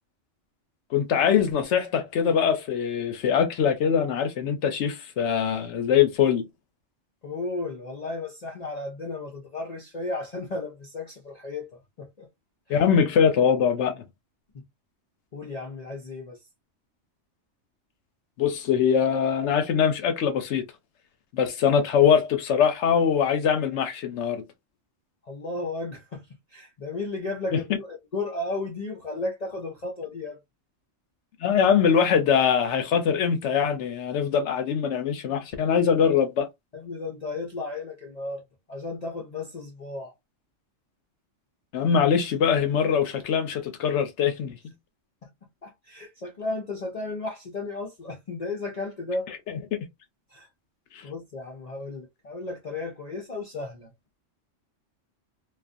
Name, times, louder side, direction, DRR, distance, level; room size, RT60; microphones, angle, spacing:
voice 1, 0.9-6.4 12.7-13.9 18.4-20.6 21.3-24.4 31.4-36.5 41.7-44.6 50.9-51.0, left 7 dB, 70° left, 0.9 m, -22 dB
voice 2, 7.2-11.7 12.0-12.3 12.7-12.8 14.5-14.6 15.3-16.4 25.2-26.2 26.5-30.4 36.7-38.4 38.7-40.1 45.2-45.3 45.6-49.3 50.3-50.5 51.0-53.9, left 2 dB, 45° left, 0.5 m, -34 dB
2.4 x 2.4 x 2.4 m
omnidirectional pair, 1.3 m